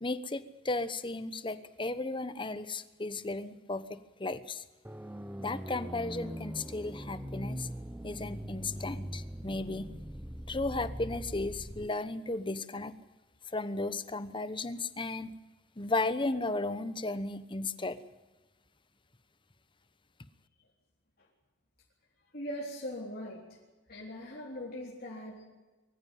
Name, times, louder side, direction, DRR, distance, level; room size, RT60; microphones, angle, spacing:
voice 1, 0.0-4.6 5.4-7.7 8.0-9.9 10.5-12.9 13.5-15.3 15.8-18.0, left 2 dB, 25° left, 12 dB, 1.1 m, -35 dB
sound 1, 4.8-11.9, equal, 10° right, 0.7 m, -41 dB
voice 2, 22.3-23.4 23.9-25.4, equal, 50° left, -4 dB, 3.9 m, -40 dB
23.5 x 15.0 x 9.3 m, 1.2 s
head